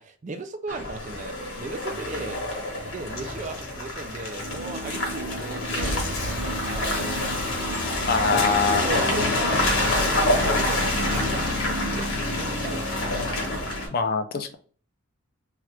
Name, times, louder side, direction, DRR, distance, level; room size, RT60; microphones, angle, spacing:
voice 1, 0.0-2.4 2.9-6.0 6.6-7.4 8.4-13.3, right 3 dB, 35° right, 7 dB, 0.3 m, -37 dB
Car passing by / Engine, 0.7-13.9, left 1 dB, 60° left, 1.1 m, -27 dB
sound 1, 4.4-12.0, right 2 dB, 90° right, 0.6 m, -39 dB
Boom / Shatter / Crushing, 5.8-9.8 10.3-10.4, right 1 dB, 60° right, 1.0 m, -36 dB
voice 2, 8.1-8.9 13.9-14.5, left 5 dB, 45° left, 7 dB, 0.4 m, -24 dB
2.9 x 2.4 x 3.1 m, 0.43 s
head